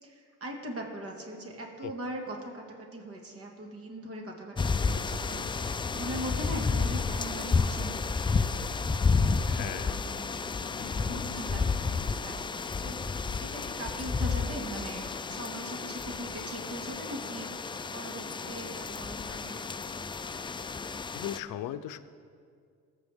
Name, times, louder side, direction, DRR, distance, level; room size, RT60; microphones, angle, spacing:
voice 1, 0.0-8.9 9.3-20.5, right 1 dB, 50° right, 1 dB, 2.0 m, -41 dB
sound 1, 4.6-21.4, left 4 dB, 15° left, 0.3 m, -31 dB
voice 2, 9.5-10.0 21.1-22.0, left 12 dB, 90° left, 11 dB, 0.6 m, -37 dB
sound 2, 10.0-13.0, left 6 dB, 50° left, 0.7 m, -47 dB
20.5 x 7.9 x 3.5 m, 2.2 s
cardioid pair, 90°, 30 cm